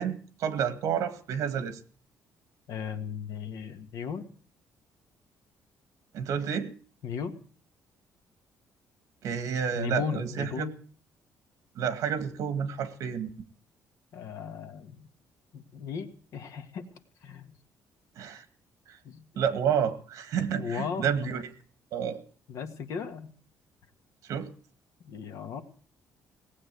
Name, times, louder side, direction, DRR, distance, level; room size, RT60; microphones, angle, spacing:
voice 1, 0.0-1.8 6.1-6.7 9.2-10.7 11.8-13.3 18.2-18.5 18.9-19.0 19.4-21.5 21.9-22.2 24.2-24.5, right 7 dB, 65° right, 10 dB, 2.0 m, -30 dB
voice 2, 2.7-4.3 7.0-7.3 9.7-10.7 14.1-15.1 15.5-16.9 17.2-17.5 19.0-19.3 20.6-21.1 22.5-23.3 25.0-25.6, left 6 dB, 65° left, 8 dB, 1.8 m, -36 dB
18.5 x 8.6 x 8.4 m, 0.44 s
cardioid pair, 175°, 6 cm